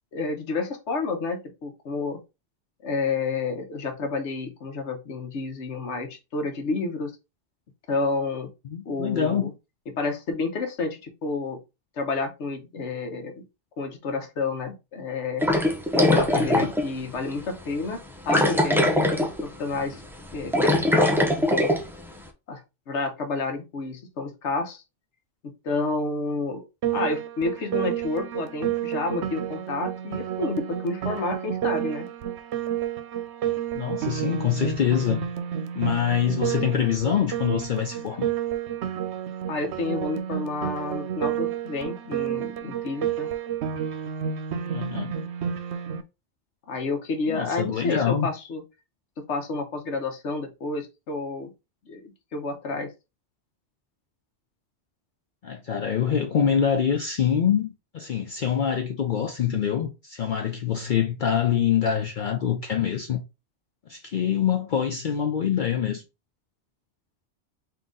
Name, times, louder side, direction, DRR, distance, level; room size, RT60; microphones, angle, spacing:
voice 1, 0.1-2.2 2.8-7.1 7.9-8.5 8.8-9.5 9.9-11.6 12.0-13.3 13.8-15.4 15.9-20.0 20.3-21.8 22.5-22.6 22.9-24.8 25.6-26.6 26.9-32.1 39.5-43.3 46.7-48.6 49.3-51.5 51.9-52.9, left 3 dB, 75° left, 1.2 m, -30 dB
voice 2, 8.7-9.4 16.3-16.7 33.7-35.3 35.7-38.3 44.7-45.2 47.3-48.3 55.4-63.2 63.9-66.0, left 8 dB, 55° left, 0.6 m, -25 dB
sound 1, 15.4-16.9 17.3-17.4 18.3-19.4 19.7-19.9 20.3-21.8, left 1 dB, 5° right, 0.3 m, -21 dB
Piano, 26.8-46.0, right 9 dB, 70° right, 0.9 m, -30 dB
3.8 x 2.8 x 3.7 m
omnidirectional pair, 1.2 m